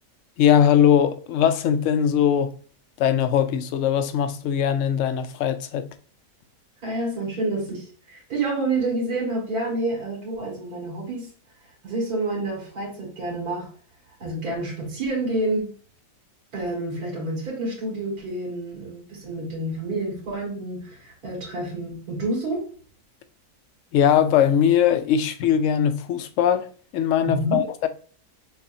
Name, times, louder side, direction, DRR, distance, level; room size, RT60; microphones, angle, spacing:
voice 1, 0.4-2.5 3.0-5.9 23.9-27.9, left 9 dB, 70° left, 0.8 m, -20 dB
voice 2, 6.8-11.3 11.8-13.7 14.2-15.7 16.5-22.6 27.2-27.6, right 2 dB, 80° right, 2.5 m, -28 dB
6.6 x 2.5 x 2.6 m
omnidirectional pair, 1.6 m